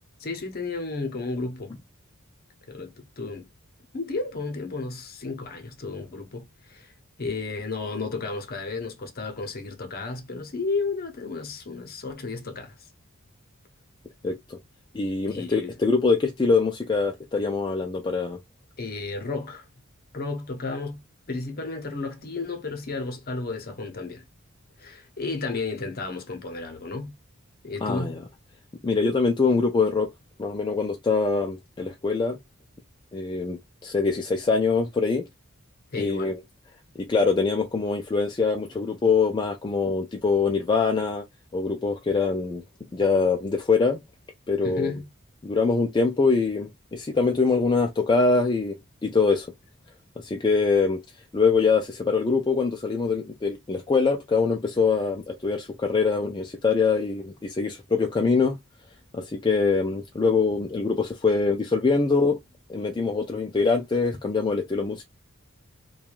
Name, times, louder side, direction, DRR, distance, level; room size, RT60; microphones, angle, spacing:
voice 1, 0.2-1.7 2.7-3.5 3.9-6.9 7.2-12.7 15.3-15.7 18.8-19.7 20.1-21.0 21.3-24.2 24.8-27.1 27.6-28.2 35.9-36.4 44.6-45.1, left 3 dB, 45° left, 0.8 m, -32 dB
voice 2, 14.2-14.6 14.9-18.4 27.8-28.2 28.8-30.1 30.4-32.4 33.1-35.2 35.9-36.3 37.0-41.2 41.5-42.6 42.9-44.0 44.5-44.9 45.4-48.8 49.0-49.5 50.2-51.0 51.3-58.6 59.1-62.4 62.7-65.0, left 4 dB, 20° left, 0.4 m, -24 dB
3.1 x 2.3 x 2.4 m
head